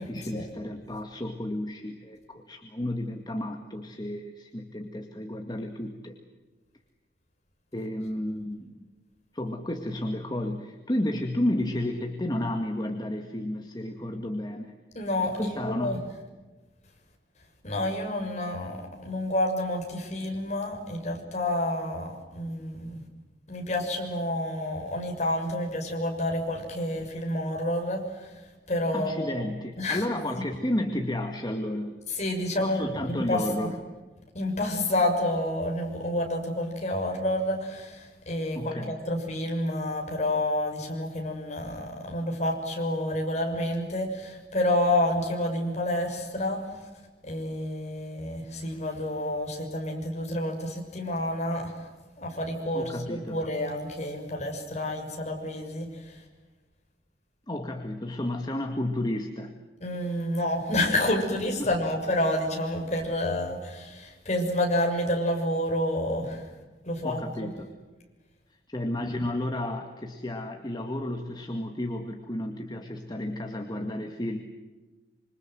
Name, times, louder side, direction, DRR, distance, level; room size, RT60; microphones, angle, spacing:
voice 1, 0.0-6.2 7.7-8.7 9.3-14.8 15.3-16.0 28.9-32.0 32.6-33.8 38.5-39.0 52.7-53.4 57.5-59.5 61.6-61.7 67.0-67.7 68.5-74.4, left 1 dB, 25° left, 4 dB, 2.0 m, -32 dB
voice 2, 14.9-16.0 17.6-23.0 23.5-29.4 29.8-30.1 32.1-33.7 34.3-46.9 47.2-51.9 52.2-56.2 59.8-66.5 66.8-67.2, left 1 dB, 40° left, 2 dB, 6.5 m, -29 dB
26.5 x 26.0 x 7.8 m, 1.2 s
head